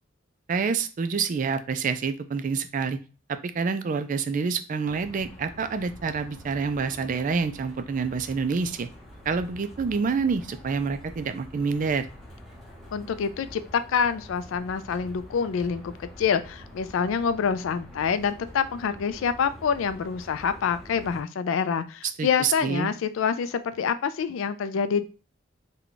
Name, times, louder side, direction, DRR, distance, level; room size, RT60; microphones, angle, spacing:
voice 1, 0.5-3.0 3.3-8.9 9.3-12.0 22.2-22.9, right 5 dB, 40° right, 10 dB, 0.3 m, -27 dB
sound 1, 4.8-21.2, equal, ahead, 0.8 m, -46 dB
voice 2, 12.9-25.0, left 6 dB, 75° left, 12 dB, 0.3 m, -26 dB
3.5 x 2.2 x 3.8 m, 0.36 s
head